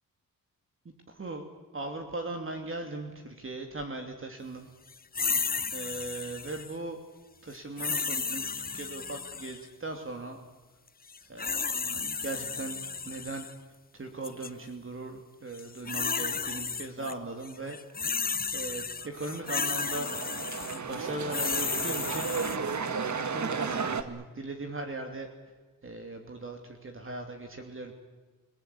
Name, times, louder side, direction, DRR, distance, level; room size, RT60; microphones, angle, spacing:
voice 1, 0.8-1.4 1.7-4.7 5.7-7.0 7.4-10.4 11.2-12.8 13.0-13.5 13.9-17.8 18.0-18.1 18.5-20.1 20.7-22.3 22.9-25.3 25.8-27.9, right 2 dB, 35° right, 4 dB, 2.8 m, -39 dB
sound 1, 5.1-6.7 7.8-9.6 11.1-13.5 14.2-14.5 15.5-17.1 17.4-22.6, left 5 dB, 25° left, 0.7 m, -33 dB
sound 2, 19.0-24.0, right 5 dB, 50° right, 1.7 m, -34 dB
29.5 x 18.5 x 8.6 m, 1.3 s
wide cardioid pair, 100°, 36 cm